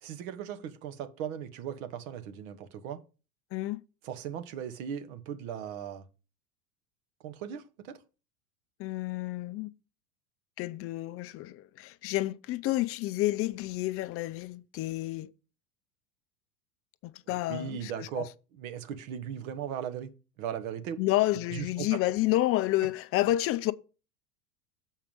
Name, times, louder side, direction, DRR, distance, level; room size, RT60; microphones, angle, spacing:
voice 1, 0.0-3.0 4.0-6.0 7.2-8.0 17.3-18.2 18.5-21.0 21.5-22.0, right 9 dB, 60° right, 1.2 m, -38 dB
voice 2, 3.5-3.8 8.8-9.7 10.6-15.3 17.0-18.3 21.0-23.7, left 16 dB, 30° left, 0.5 m, -30 dB
7.3 x 4.6 x 5.3 m
hypercardioid pair, 90°, 48 cm